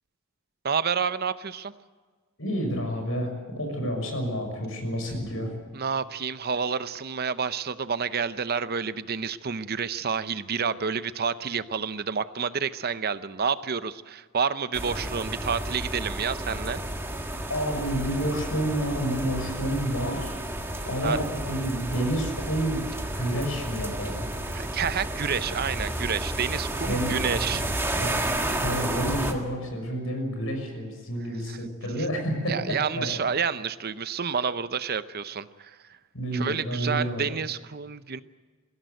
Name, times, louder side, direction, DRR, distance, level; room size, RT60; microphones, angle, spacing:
voice 1, 0.6-1.7 5.7-16.8 21.0-21.2 24.5-28.1 31.5-31.6 32.5-36.0 36.3-38.2, right 6 dB, 50° right, 13 dB, 0.7 m, -29 dB
voice 2, 2.4-5.5 17.5-20.4 20.8-22.9 23.1-24.3 26.9-27.1 28.0-28.2 28.6-33.1 36.1-37.3, equal, 75° left, 4 dB, 6.3 m, -29 dB
sound 1, 14.7-29.3, right 1 dB, 10° right, 1.7 m, -31 dB
22.0 x 16.0 x 9.3 m, 1.4 s
head